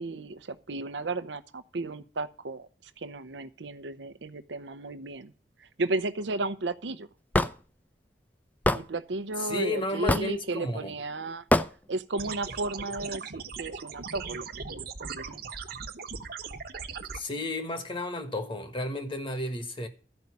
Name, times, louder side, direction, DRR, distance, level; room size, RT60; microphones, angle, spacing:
voice 1, 0.0-5.3 5.6-7.1 8.7-11.4 11.9-15.2, right 2 dB, 85° right, 0.7 m, -34 dB
Hammer / Wood, 7.3-7.5 8.6-8.8 10.1-10.4 11.5-11.7, left 1 dB, 10° left, 0.5 m, -22 dB
voice 2, 9.4-10.9 17.1-19.9, left 1 dB, 30° left, 1.4 m, -32 dB
sound 1, 12.2-17.2, right 5 dB, 60° right, 1.1 m, -39 dB
13.0 x 5.4 x 8.2 m
head